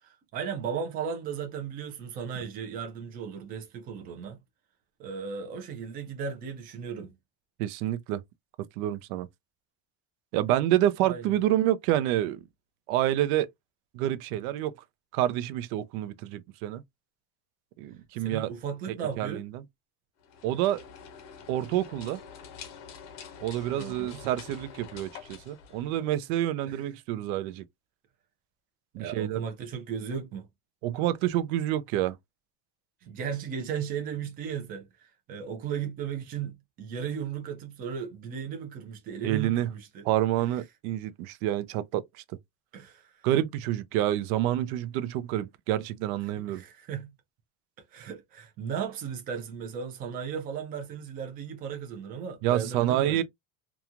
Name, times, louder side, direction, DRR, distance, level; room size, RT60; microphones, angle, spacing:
voice 1, 0.0-4.4 5.0-7.1 11.0-11.3 18.2-19.5 23.8-24.2 26.7-26.9 29.0-30.5 33.0-40.1 42.7-43.3 46.4-47.1 47.9-53.2, right 7 dB, 20° right, 0.4 m, -36 dB
voice 2, 7.6-8.2 8.8-9.3 10.3-12.4 12.9-13.5 13.9-14.7 15.1-16.8 17.8-18.5 19.2-19.6 20.4-20.8 21.5-22.2 23.4-27.6 28.9-29.4 30.8-32.2 39.2-39.7 40.0-42.0 43.2-46.6 52.4-53.2, right 13 dB, 75° right, 0.6 m, -28 dB
sound 1, 20.2-26.4, left 7 dB, 40° left, 0.6 m, -47 dB
2.9 x 2.3 x 2.4 m
cardioid pair, 175°, 43 cm